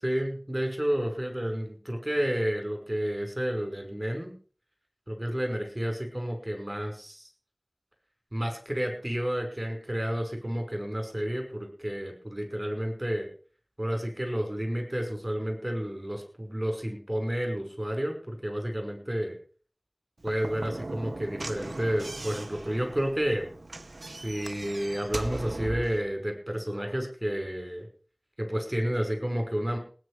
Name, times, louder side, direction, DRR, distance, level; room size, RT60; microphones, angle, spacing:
voice 1, 0.0-4.4 5.1-7.3 8.3-13.3 13.8-19.3 20.2-23.5 24.1-27.9 28.4-29.8, equal, 20° right, 4 dB, 5.5 m, -31 dB
Slam / Knock, 20.2-26.0, right 2 dB, 80° right, 0.9 m, -39 dB
18.0 x 9.4 x 5.0 m, 0.42 s
wide cardioid pair, 50°, 0 cm